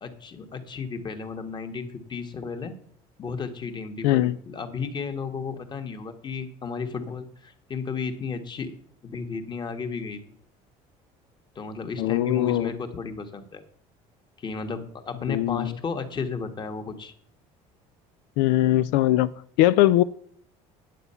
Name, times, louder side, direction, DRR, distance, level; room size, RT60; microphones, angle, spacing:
voice 1, 0.0-2.7 3.2-8.7 9.0-10.2 11.5-13.6 14.4-17.1, left 5 dB, 30° left, 1.4 m, -33 dB
voice 2, 4.0-4.4 12.0-12.7 15.3-15.7 18.4-19.3 19.6-20.0, left 15 dB, 90° left, 0.4 m, -21 dB
9.2 x 8.3 x 5.6 m
cardioid pair, 120°, 15 cm